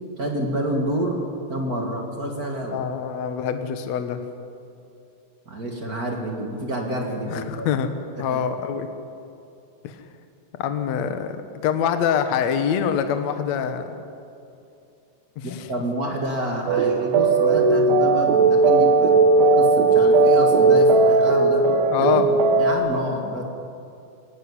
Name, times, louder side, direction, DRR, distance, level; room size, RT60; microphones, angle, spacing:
voice 1, 0.2-1.2 1.5-2.8 5.4-7.7 8.2-8.4 15.4-19.2 19.5-21.6 22.0-23.4, right 1 dB, 45° right, 1 dB, 1.2 m, -28 dB
voice 2, 2.7-4.2 7.3-7.9 8.2-8.9 9.8-10.0 10.6-13.9 15.4-15.7 21.9-22.3, left 8 dB, 85° left, 8 dB, 1.5 m, -25 dB
sound 1, 16.7-22.7, right 3 dB, 80° right, 4.0 m, -17 dB
22.0 x 17.5 x 9.8 m, 2.6 s
omnidirectional pair, 5.3 m